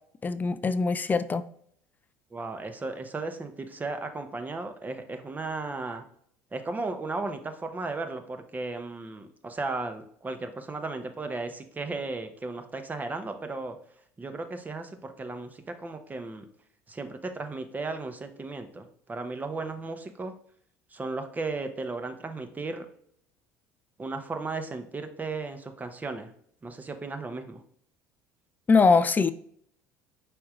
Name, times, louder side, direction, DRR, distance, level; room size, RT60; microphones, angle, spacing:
voice 1, 0.2-1.5 28.7-29.3, left 4 dB, 25° left, 13 dB, 0.4 m, -22 dB
voice 2, 2.3-6.0 6.5-13.8 14.2-16.5 16.9-20.3 20.9-22.9 24.0-26.3 26.6-27.6, right 3 dB, 20° right, 7 dB, 0.8 m, -35 dB
5.1 x 4.4 x 2.4 m, 0.64 s
hypercardioid pair, 65°, 8 cm